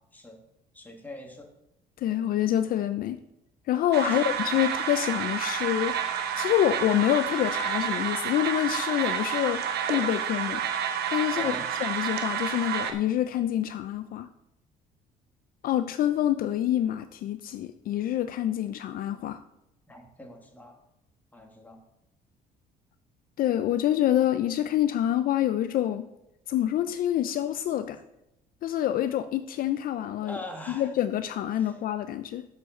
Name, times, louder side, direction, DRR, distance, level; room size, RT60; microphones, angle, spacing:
voice 1, 0.7-1.5 4.0-4.3 11.3-11.7 19.9-20.8 21.3-21.8 30.2-30.9 31.5-31.7, left 1 dB, 10° left, 2 dB, 1.7 m, -42 dB
voice 2, 2.0-3.2 3.7-6.0 6.4-10.6 11.1-11.5 11.8-14.3 15.6-19.4 23.4-26.1 26.5-28.0 28.6-30.4 30.7-32.5, left 11 dB, 60° left, 11 dB, 0.4 m, -26 dB
sound 1, 3.9-12.9, right 8 dB, 70° right, 1.0 m, -30 dB
6.5 x 5.4 x 6.3 m, 0.86 s
cardioid pair, 110°, 17 cm